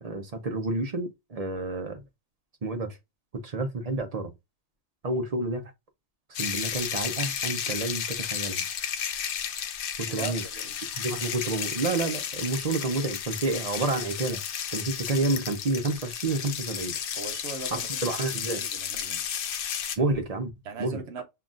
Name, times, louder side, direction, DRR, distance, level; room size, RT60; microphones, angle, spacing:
voice 1, 0.0-2.0 2.6-3.0 3.4-4.3 5.0-5.7 6.4-8.6 10.0-10.4 10.9-14.4 14.7-17.0 17.7-18.6 20.0-20.5 20.8-21.0, right 2 dB, 40° right, 0.6 m, -29 dB
sound 1, 6.3-20.0, left 8 dB, 60° left, 0.6 m, -33 dB
voice 2, 10.1-10.8 17.2-19.2 20.6-21.2, right 5 dB, 70° right, 1.0 m, -39 dB
5.8 x 2.4 x 2.4 m
omnidirectional pair, 1.2 m